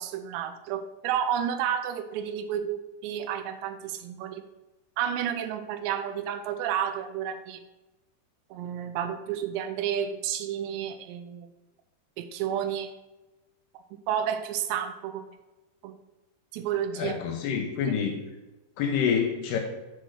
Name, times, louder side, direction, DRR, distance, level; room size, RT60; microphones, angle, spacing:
voice 1, 0.0-4.4 5.0-7.6 8.5-11.5 12.2-12.9 13.7-15.3 15.8-15.9 16.5-17.1 17.8-18.0, right 9 dB, 85° right, 8 dB, 2.6 m, -31 dB
voice 2, 17.0-18.1 18.8-19.6, left 7 dB, 80° left, 3 dB, 2.5 m, -27 dB
7.6 x 4.0 x 6.2 m, 1.1 s
omnidirectional pair, 5.2 m